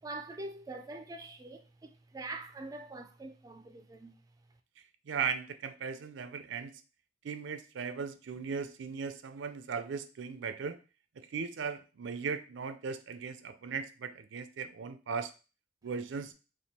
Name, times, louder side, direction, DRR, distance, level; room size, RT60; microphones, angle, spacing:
voice 1, 0.0-4.1, right 2 dB, 20° right, 0.3 m, -44 dB
voice 2, 5.1-6.8 7.2-10.8 11.2-15.3 15.8-16.3, right 5 dB, 80° right, 0.5 m, -37 dB
3.4 x 2.6 x 4.2 m
head